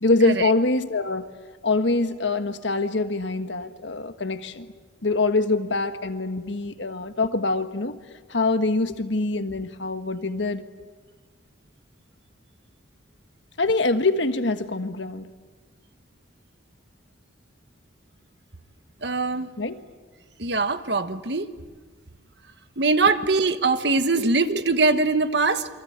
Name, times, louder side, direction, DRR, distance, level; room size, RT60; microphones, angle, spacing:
voice 1, 0.0-1.3 1.6-4.7 5.0-8.0 8.3-10.6 13.6-15.3 19.6-19.8, left 2 dB, 70° left, 9 dB, 1.5 m, -24 dB
voice 2, 19.0-19.5 20.4-21.5 22.8-25.7, right 3 dB, 60° right, 10 dB, 1.3 m, -22 dB
28.5 x 24.0 x 8.8 m, 1.4 s
head